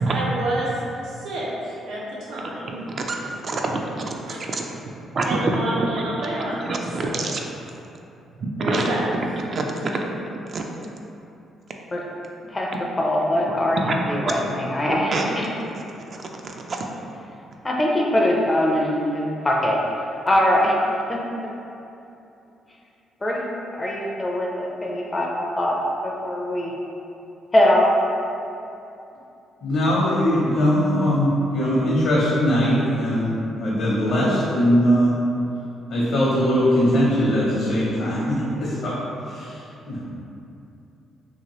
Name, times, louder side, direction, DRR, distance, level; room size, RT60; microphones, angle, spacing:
voice 1, 0.1-2.8 4.3-4.4 5.2-6.7 7.0-7.3 8.6-9.1, right 1 dB, 85° right, -6 dB, 0.7 m, -28 dB
voice 2, 2.9-4.1 4.6-4.7 5.1-5.4 5.8-5.9 6.4-7.4 8.4-8.9 9.5-9.6 9.9-10.2 10.5-10.6 13.8-14.5 14.8-15.2 16.1-16.9, right 3 dB, 45° right, 1 dB, 0.3 m, -27 dB
voice 3, 13.0-15.4 17.6-19.8 20.3-20.8 21.1-21.2 23.2-23.4 23.7-25.8 26.0-26.7 27.5-27.9, left 1 dB, 20° left, -2 dB, 0.4 m, -22 dB
voice 4, 29.6-35.1 35.9-38.9 39.3-39.5 39.9-40.0, equal, 70° left, -8 dB, 0.6 m, -20 dB
2.8 x 2.4 x 3.0 m, 2.7 s
cardioid pair, 90°, 0 cm